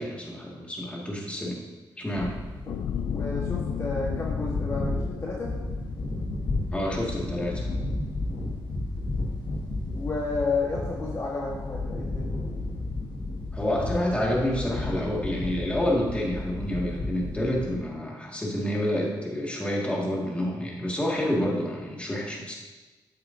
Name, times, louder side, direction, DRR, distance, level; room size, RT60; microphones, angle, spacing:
voice 1, 0.0-1.6 2.0-2.3 6.7-7.7 13.5-22.5, left 1 dB, 15° left, -3 dB, 1.8 m, -28 dB
sound 1, 2.1-17.7, left 2 dB, 70° left, 1.5 m, -33 dB
sound 2, 2.7-7.2 7.6-7.8, left 9 dB, 85° left, 0.4 m, -35 dB
voice 2, 2.7-5.5 10.0-12.4, left 3 dB, 35° left, -4 dB, 1.3 m, -32 dB
8.1 x 7.6 x 2.6 m, 1.2 s
cardioid pair, 80°, 8 cm